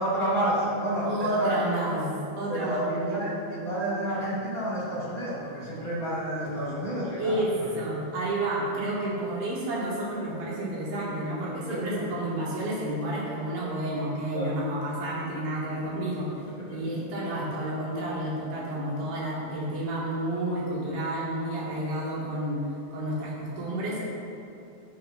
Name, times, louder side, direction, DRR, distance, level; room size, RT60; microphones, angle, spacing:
voice 1, 0.0-1.9 2.5-7.7 11.7-12.0 14.3-14.6 15.8-16.1 16.5-17.3, right 1 dB, 25° left, -8 dB, 2.5 m, -30 dB
voice 2, 1.0-2.1 2.4-2.8 7.2-16.3 16.7-22.6 22.9-24.0, right 1 dB, 85° right, -6 dB, 4.1 m, -30 dB
16.0 x 7.2 x 3.7 m, 2.9 s
omnidirectional pair, 4.1 m